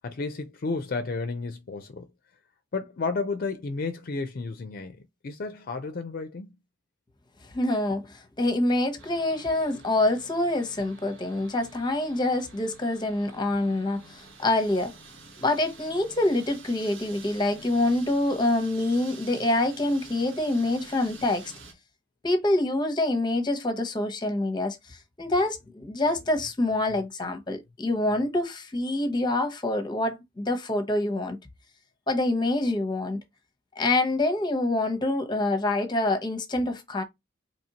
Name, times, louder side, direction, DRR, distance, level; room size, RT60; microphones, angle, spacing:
voice 1, 0.0-2.1 2.7-6.5, left 3 dB, 50° left, 0.5 m, -32 dB
voice 2, 7.4-14.9 15.4-21.5 22.2-31.4 32.1-33.2 33.8-37.0, left 2 dB, 25° left, 0.8 m, -26 dB
sound 1, 9.0-21.7, right 3 dB, 85° right, 1.3 m, -49 dB
4.3 x 3.0 x 2.8 m
head